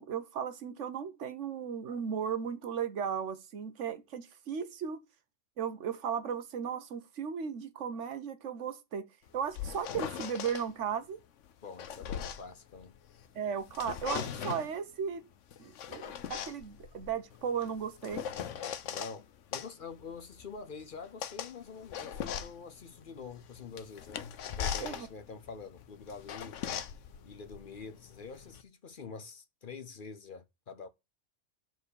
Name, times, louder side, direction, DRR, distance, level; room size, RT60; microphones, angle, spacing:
voice 1, 0.0-5.0 5.6-11.2 13.3-15.2 15.6-18.3 24.8-25.1, right 7 dB, 75° right, 1.2 m, -36 dB
sound 1, 9.3-10.7 11.5-13.3 13.6-14.7 15.5-19.2 19.5-28.6, left 8 dB, 80° left, 1.1 m, -40 dB
voice 2, 11.6-12.9 18.8-19.3 19.5-24.2 24.6-26.9 27.2-30.9, left 5 dB, 50° left, 0.8 m, -46 dB
6.9 x 4.6 x 6.9 m
omnidirectional pair, 1.3 m